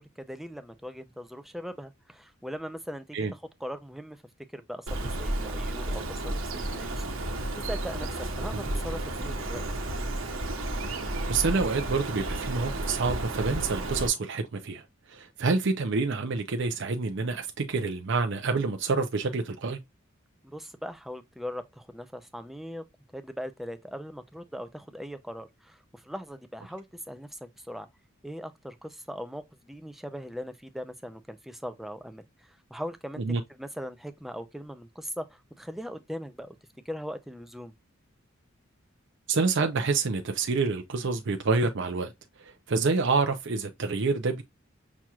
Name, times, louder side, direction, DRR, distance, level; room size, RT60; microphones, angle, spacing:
voice 1, 0.0-4.2 4.5-9.6 20.4-22.8 23.1-27.9 28.2-33.2 33.5-36.6 36.9-37.7, equal, ahead, 0.5 m, -40 dB
Bird, 4.9-14.1, right 1 dB, 80° right, 1.1 m, -32 dB
voice 2, 11.3-14.8 15.1-19.8 33.2-33.4 39.3-42.1 42.4-44.4, right 4 dB, 60° right, 0.5 m, -27 dB
6.0 x 2.9 x 2.3 m
head